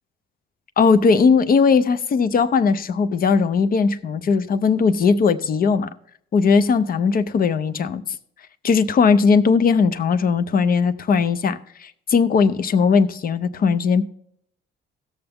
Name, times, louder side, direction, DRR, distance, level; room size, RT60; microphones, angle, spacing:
voice 1, 0.8-5.9 6.3-8.0 8.6-14.0, left 5 dB, 45° left, 0.6 m, -18 dB
16.0 x 6.9 x 3.5 m
cardioid pair, 90°, 20 cm